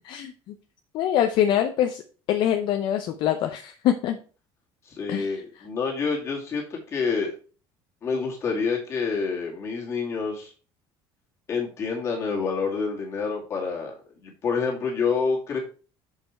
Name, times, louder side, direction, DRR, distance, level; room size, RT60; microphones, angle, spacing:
voice 1, 0.1-0.5 0.9-2.0 2.3-4.2 5.1-5.6, left 10 dB, 50° left, 6 dB, 0.6 m, -24 dB
voice 2, 4.8-7.4 8.0-10.5 11.5-13.9 14.2-15.6, left 5 dB, 30° left, -2 dB, 2.3 m, -27 dB
6.6 x 5.4 x 4.5 m, 0.37 s
cardioid pair, 165°, 10 cm